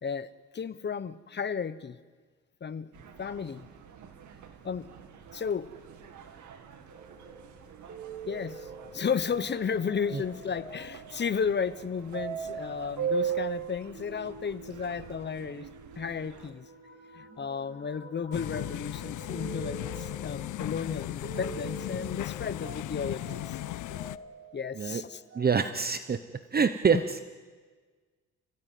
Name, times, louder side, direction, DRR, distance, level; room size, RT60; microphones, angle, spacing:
voice 1, 0.0-2.0 2.6-2.9 3.2-3.7 4.6-4.9 5.3-5.7 8.3-8.7 8.9-15.7 16.0-16.7 17.1-23.6 24.5-25.2, left 6 dB, 35° left, 15 dB, 1.1 m, -33 dB
sound 1, 2.9-16.5, right 10 dB, 75° right, 2.3 m, -40 dB
sound 2, 6.9-25.5, right 3 dB, 50° right, 7.3 m, -47 dB
sound 3, 18.3-24.2, left 15 dB, 80° left, 0.7 m, -36 dB
voice 2, 25.3-26.2 26.5-27.2, right 6 dB, 30° right, 11 dB, 1.0 m, -26 dB
30.0 x 16.5 x 9.5 m, 1.5 s
cardioid pair, 90°, 30 cm